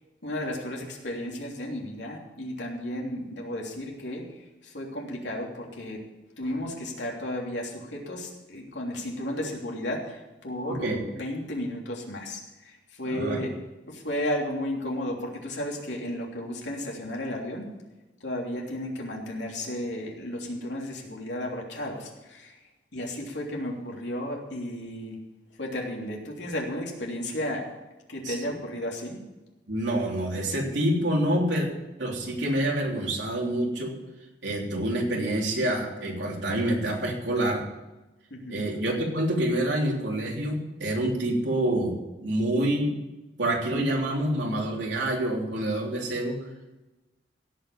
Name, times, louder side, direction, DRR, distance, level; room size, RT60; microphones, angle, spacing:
voice 1, 0.2-4.2 4.6-6.0 6.4-13.5 13.9-17.7 18.2-22.6 22.9-25.2 25.6-27.7 28.1-29.2 38.3-38.6, left 1 dB, 80° left, -1 dB, 3.1 m, -33 dB
voice 2, 10.7-11.0 13.1-13.4 28.2-28.5 29.7-31.7 32.0-34.0 34.4-37.6 38.5-41.9 42.2-42.9 43.4-46.4, right 1 dB, 85° right, -1 dB, 3.4 m, -27 dB
17.0 x 5.7 x 8.6 m, 1.1 s
head